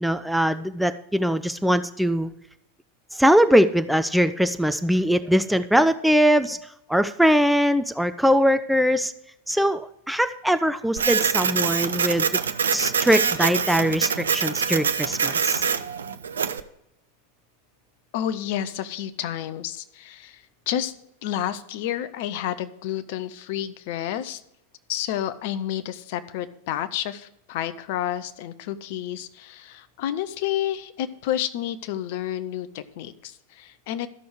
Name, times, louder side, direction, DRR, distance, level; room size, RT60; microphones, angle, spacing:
voice 1, 0.0-2.3 3.2-6.6 6.9-9.1 9.5-12.3 12.7-15.6, equal, ahead, 11 dB, 0.4 m, -21 dB
Printer, 11.0-16.6, right 6 dB, 70° right, 0.5 m, -24 dB
voice 2, 18.1-20.4 20.7-20.9 21.2-24.4 24.9-34.1, left 11 dB, 50° left, 12 dB, 0.6 m, -30 dB
13.0 x 6.1 x 4.7 m, 0.81 s
figure-of-eight pair, 90°, 0 cm